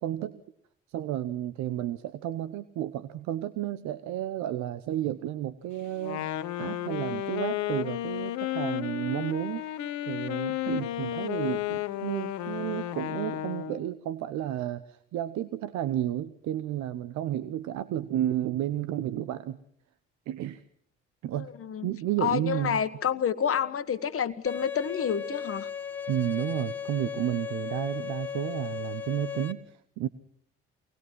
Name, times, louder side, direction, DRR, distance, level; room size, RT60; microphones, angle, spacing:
voice 1, 0.0-0.4 0.9-6.3 6.6-9.6 10.1-19.6 20.3-20.6 21.2-21.5 21.8-22.8 26.1-30.1, right 12 dB, 70° right, 13 dB, 1.0 m, -32 dB
Wind instrument woodwind instrument, 6.0-13.9, left 13 dB, 70° left, 1.1 m, -33 dB
voice 2, 21.3-21.9 22.2-25.7, left 8 dB, 45° left, 12 dB, 1.5 m, -29 dB
Bowed string instrument, 24.5-29.5, left 7 dB, 5° left, 2.2 m, -36 dB
24.0 x 19.5 x 6.1 m, 0.65 s
hypercardioid pair, 45°, 30 cm